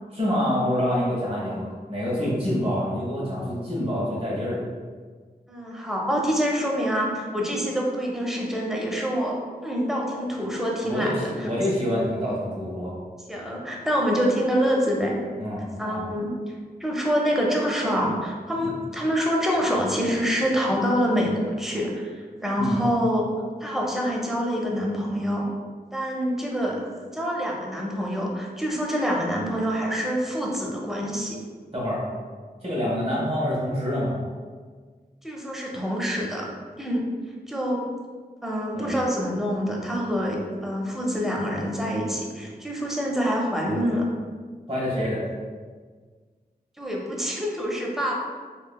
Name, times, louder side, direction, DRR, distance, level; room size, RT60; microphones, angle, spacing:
voice 1, 0.1-4.6 10.8-12.9 15.4-16.0 18.6-18.7 22.6-22.8 31.7-32.0 32.6-34.1 38.7-38.9 44.7-45.2, equal, 40° right, -6 dB, 1.2 m, -26 dB
voice 2, 5.5-11.1 11.4-11.5 13.3-15.2 15.8-16.3 16.8-23.3 23.6-25.5 25.9-31.4 35.2-36.5 36.8-37.0 37.5-37.8 38.4-44.1 46.8-48.1, equal, ahead, -2 dB, 0.6 m, -26 dB
3.0 x 2.7 x 2.2 m, 1.5 s
wide cardioid pair, 55°, 17 cm